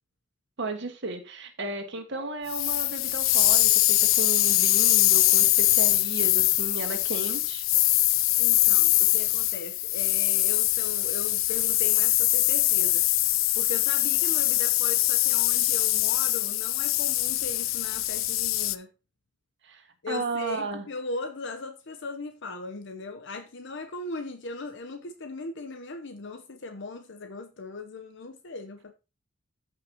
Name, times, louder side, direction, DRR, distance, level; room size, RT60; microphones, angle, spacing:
voice 1, 0.6-7.6 19.6-20.8, right 2 dB, 65° right, 1.7 m, -34 dB
sound 1, 2.5-18.8, left 17 dB, 85° left, 0.5 m, -23 dB
voice 2, 8.4-13.1 13.5-18.9 20.0-28.9, left 3 dB, 65° left, 0.9 m, -38 dB
14.5 x 5.6 x 2.9 m
head